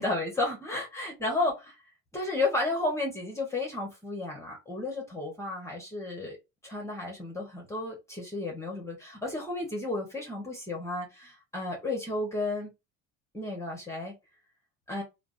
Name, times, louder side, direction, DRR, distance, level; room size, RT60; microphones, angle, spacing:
voice 1, 0.0-1.7 2.1-6.4 6.6-12.7 13.3-14.1 14.9-15.0, left 2 dB, 10° left, 1.1 m, -32 dB
3.4 x 2.1 x 2.6 m
supercardioid pair, 115°, 33 cm